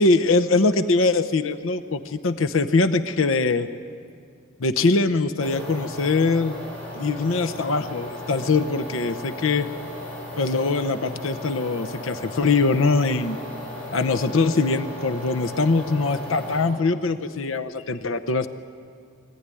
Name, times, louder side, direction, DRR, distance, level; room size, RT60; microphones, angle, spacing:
voice 1, 0.0-3.7 4.6-6.6 6.9-9.7 10.4-13.4 13.9-18.5, left 3 dB, 85° left, 11 dB, 0.8 m, -22 dB
sound 1, 5.4-16.7, left 1 dB, 5° left, 7.4 m, -36 dB
24.0 x 16.0 x 9.9 m, 2.3 s
head